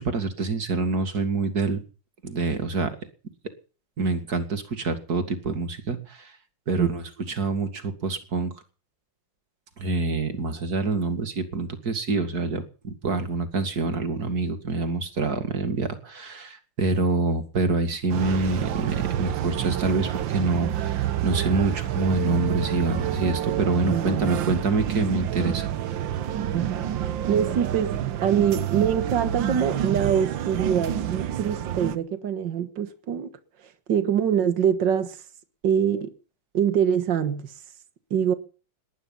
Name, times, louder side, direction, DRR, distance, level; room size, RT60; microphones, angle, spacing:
voice 1, 0.0-1.8 2.2-3.0 4.0-6.3 6.7-8.5 9.8-25.7, right 3 dB, 55° right, 2.7 m, -26 dB
sound 1, 18.1-32.0, right 11 dB, 85° right, 1.8 m, -28 dB
voice 2, 23.9-24.4 26.5-33.3 33.9-35.2 35.6-36.1 36.5-37.5 38.1-38.3, right 8 dB, 70° right, 2.2 m, -24 dB
19.5 x 12.0 x 5.7 m
omnidirectional pair, 2.0 m